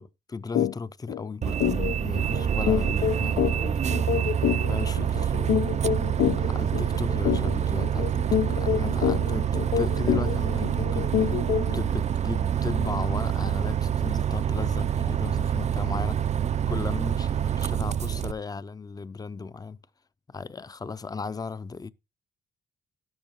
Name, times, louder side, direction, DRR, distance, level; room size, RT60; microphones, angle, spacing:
voice 1, 0.0-3.8 4.7-5.5 6.4-11.4 11.7-16.4 16.7-19.8 20.3-21.9, left 4 dB, 20° left, 0.6 m, -36 dB
sound 1, 0.5-0.7 1.1-1.2 1.6-11.8, left 11 dB, 75° left, 0.6 m, -27 dB
Bus, 1.4-18.3, right 9 dB, 35° right, 0.5 m, -26 dB
sound 2, 7.9-9.9 10.4-10.5 10.9-13.0 13.3-13.4 13.6-13.7 14.0-14.1 14.5-14.6, right 9 dB, 70° right, 1.0 m, -48 dB
12.0 x 11.5 x 3.0 m
cardioid pair, 90°, 20 cm